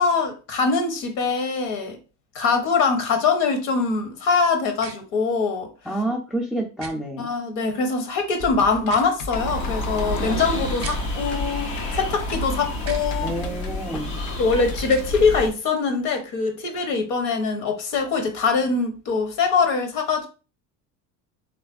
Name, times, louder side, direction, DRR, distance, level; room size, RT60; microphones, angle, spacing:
voice 1, 0.0-2.0 2.3-5.7 7.2-13.3 14.4-20.3, left 4 dB, 60° left, 6 dB, 1.0 m, -23 dB
sound 1, 4.8-5.0 6.8-6.9 8.8-9.1 10.8-11.0 12.8-13.1 14.8-15.1, right 5 dB, 30° right, 0.8 m, -37 dB
voice 2, 5.9-7.3 13.2-14.2, right 1 dB, ahead, 0 dB, 0.4 m, -28 dB
Typing, 8.4-15.4, left 3 dB, 40° left, 0.6 m, -40 dB
sound 2, 9.3-15.5, left 1 dB, 85° left, 1.0 m, -29 dB
3.3 x 2.5 x 2.4 m, 0.33 s
hypercardioid pair, 75°, 47 cm